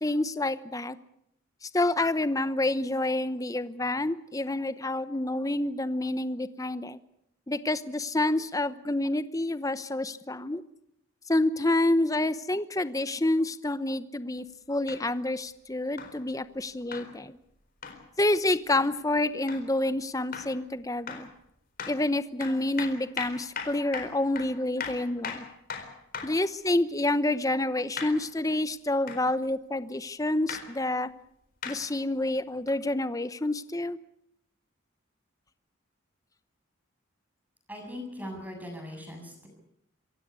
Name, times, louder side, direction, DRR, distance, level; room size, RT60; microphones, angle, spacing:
voice 1, 0.0-1.0 1.6-7.0 7.5-10.6 11.3-17.4 18.2-21.3 21.9-25.4 26.2-31.1 31.6-34.0, left 2 dB, 15° left, 13 dB, 0.9 m, -28 dB
sound 1, 14.9-15.0 16.0-16.2 16.9-17.1 17.8-18.0 18.7-18.9 19.5-19.7 20.3-20.6 21.1-21.3 21.8-22.0 22.4-26.4 28.0-28.2 29.1-29.3 30.5-30.7 31.6-31.8 32.7-32.8, left 6 dB, 45° left, 4.2 m, -38 dB
voice 2, 37.7-39.5, left 1 dB, 10° right, 2 dB, 7.4 m, -40 dB
26.5 x 16.0 x 8.3 m, 0.75 s
head